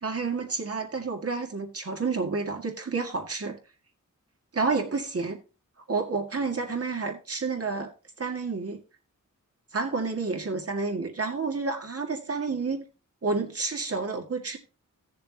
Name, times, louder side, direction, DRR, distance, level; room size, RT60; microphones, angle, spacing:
voice 1, 0.0-3.6 4.5-5.4 5.9-7.9 8.2-8.8 9.7-12.9 13.2-14.6, right 4 dB, 50° right, 2.0 m, -30 dB
16.5 x 6.8 x 2.8 m
wide cardioid pair, 115°, 31 cm